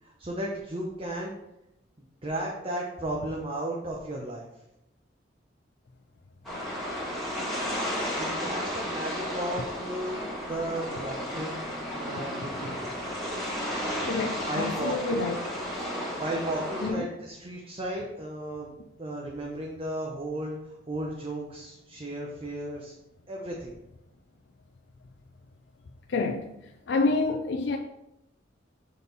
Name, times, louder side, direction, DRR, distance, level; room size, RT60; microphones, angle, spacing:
voice 1, 0.0-1.3 2.2-4.5 8.2-11.6 11.9-12.9 14.5-15.3 16.2-18.7 19.0-20.6 20.9-22.9 23.3-23.7, right 1 dB, 30° right, 0.8 m, -34 dB
sound 1, 6.4-16.9, equal, ahead, 1.9 m, -33 dB
voice 2, 14.0-15.4 16.8-17.1 26.1-26.5 26.9-27.8, left 3 dB, 65° left, 0.5 m, -28 dB
6.9 x 4.1 x 4.0 m
head